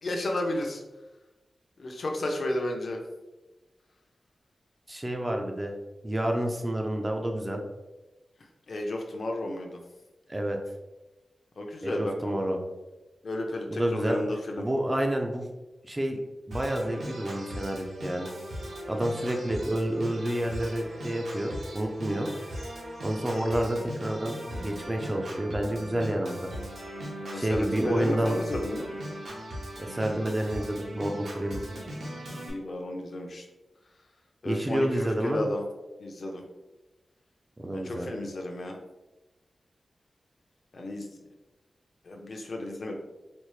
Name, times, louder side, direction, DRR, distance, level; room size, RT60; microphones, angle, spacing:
voice 1, 0.0-0.8 1.8-3.0 8.7-9.8 11.6-12.4 13.2-14.7 27.3-28.9 32.3-33.5 34.4-35.6 36.0-36.4 37.7-38.8 40.7-41.1 42.0-42.9, left 1 dB, 50° left, 2 dB, 0.5 m, -32 dB
voice 2, 4.9-5.8 6.0-7.6 10.3-10.6 11.8-12.6 13.7-14.2 14.6-15.5 15.8-16.2 16.5-18.3 18.9-22.3 23.0-26.5 27.3-28.4 29.8-31.6 34.4-35.4 37.6-38.1, right 1 dB, 15° right, 3 dB, 0.3 m, -29 dB
Organ, 16.5-32.5, equal, 90° right, 0.9 m, -39 dB
4.2 x 2.0 x 3.1 m, 1.1 s
wide cardioid pair, 175°, 0 cm